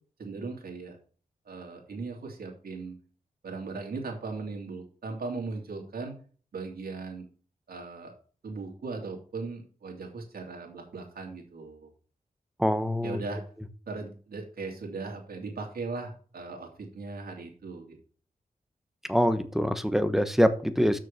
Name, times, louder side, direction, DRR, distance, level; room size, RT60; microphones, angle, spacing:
voice 1, 0.2-1.0 1.5-3.0 3.4-6.1 6.5-7.2 7.7-8.1 8.4-11.9 13.0-13.4 13.9-18.0, right 3 dB, 85° right, 1 dB, 2.6 m, -38 dB
voice 2, 12.6-13.2 19.1-21.0, equal, ahead, 10 dB, 1.1 m, -24 dB
6.8 x 6.4 x 6.8 m, 0.42 s
cardioid pair, 65°, 15 cm